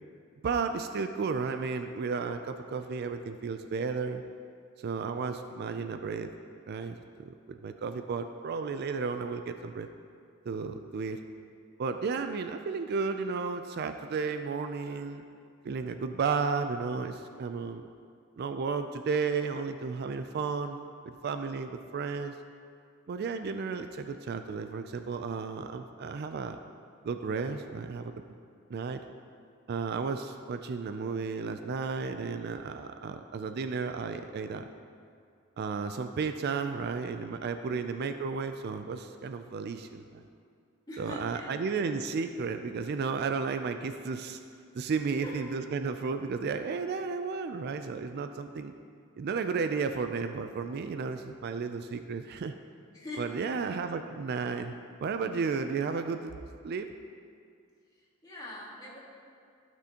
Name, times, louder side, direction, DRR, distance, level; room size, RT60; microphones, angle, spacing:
voice 1, 0.4-4.2 4.8-6.3 6.7-9.9 10.5-11.2 11.8-15.2 15.6-17.8 18.4-22.3 23.1-26.6 27.0-28.1 28.7-29.0 29.7-34.7 35.6-40.2 41.0-44.4 44.7-48.7 49.2-52.5 53.2-54.7 55.0-56.3 56.6-56.9, right 5 dB, 50° right, 8 dB, 0.4 m, -33 dB
voice 2, 40.9-41.6 45.2-45.4 52.9-53.3 57.9-59.0, left 2 dB, 20° left, -6 dB, 1.8 m, -43 dB
15.0 x 6.1 x 2.9 m, 2.3 s
head